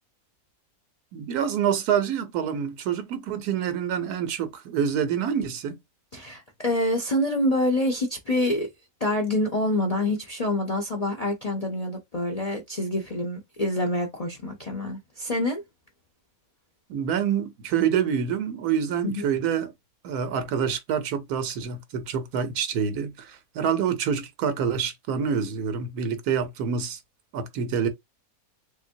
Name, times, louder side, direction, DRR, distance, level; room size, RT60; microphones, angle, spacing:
voice 1, 1.1-5.8 16.9-19.7 20.0-27.0 27.3-27.9, right 7 dB, 85° right, 1.3 m, -27 dB
voice 2, 6.1-8.7 9.0-15.6 19.0-19.3, left 1 dB, 45° left, 0.5 m, -26 dB
3.4 x 2.9 x 2.6 m
omnidirectional pair, 1.6 m